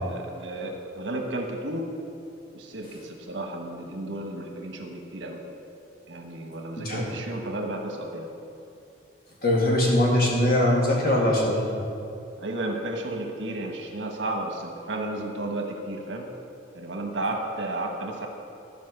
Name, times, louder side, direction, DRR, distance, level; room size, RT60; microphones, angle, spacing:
voice 1, 0.0-1.9 2.5-5.4 6.1-8.3 12.4-16.3 16.7-18.3, right 1 dB, 80° right, 3 dB, 1.3 m, -33 dB
voice 2, 9.4-11.6, left 1 dB, 50° left, -3 dB, 2.2 m, -21 dB
13.5 x 5.1 x 6.6 m, 2.6 s
head